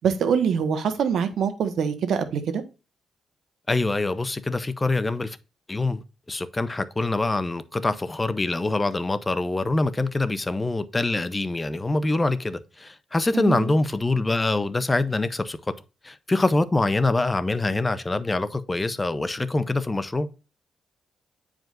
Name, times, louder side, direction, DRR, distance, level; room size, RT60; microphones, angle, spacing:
voice 1, 0.0-2.6 13.3-13.7, right 7 dB, 75° right, 1.3 m, -24 dB
voice 2, 3.7-5.4 5.7-6.0 6.3-15.7 16.0-20.3, left 2 dB, 20° left, 0.6 m, -25 dB
9.1 x 4.9 x 2.5 m
cardioid pair, 115°, 0 cm